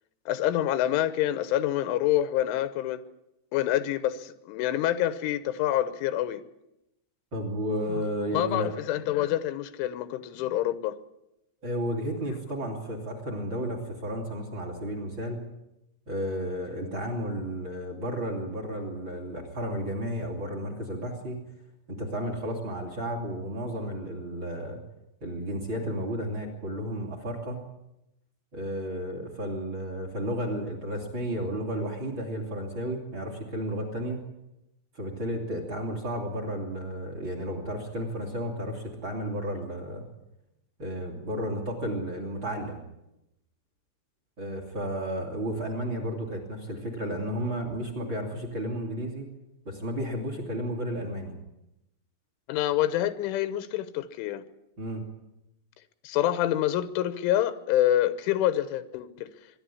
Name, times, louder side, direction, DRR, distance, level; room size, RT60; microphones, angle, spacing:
voice 1, 0.3-3.0 3.5-6.4 8.3-11.0 52.5-54.4 56.1-59.3, left 12 dB, 90° left, 3.5 m, -27 dB
voice 2, 7.3-8.7 11.6-15.4 16.1-21.4 21.9-24.8 25.2-27.7 28.5-34.3 34.9-40.0 40.8-42.8 44.4-49.3 49.6-51.3 54.8-55.1, equal, 30° right, 3.0 m, -32 dB
24.0 x 11.5 x 9.9 m
omnidirectional pair, 5.5 m